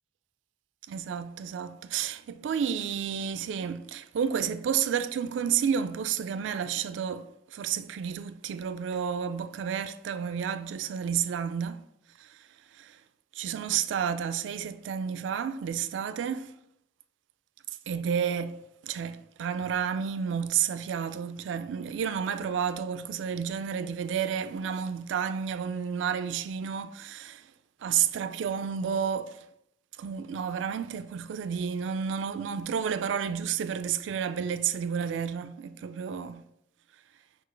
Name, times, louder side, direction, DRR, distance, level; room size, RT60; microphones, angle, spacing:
voice 1, 0.9-11.8 12.2-12.4 12.8-13.0 13.4-16.5 17.9-18.6 18.8-27.5 27.8-29.4 30.0-36.4, right 7 dB, 85° right, 0.3 m, -31 dB
5.9 x 2.4 x 3.2 m
head